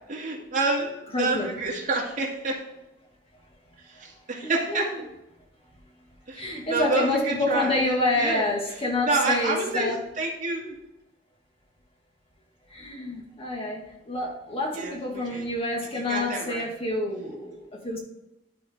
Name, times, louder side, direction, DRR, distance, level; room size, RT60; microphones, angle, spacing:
voice 1, 0.1-2.6 3.8-4.9 6.3-7.8 8.2-8.5 9.0-9.9 10.2-10.7 14.7-15.5 15.9-16.6, right 3 dB, 45° right, -3 dB, 2.2 m, -28 dB
voice 2, 1.1-1.6 4.4-4.9 6.4-10.0 12.7-18.0, left 2 dB, 30° left, 0 dB, 1.6 m, -28 dB
11.5 x 4.9 x 3.4 m, 0.91 s
head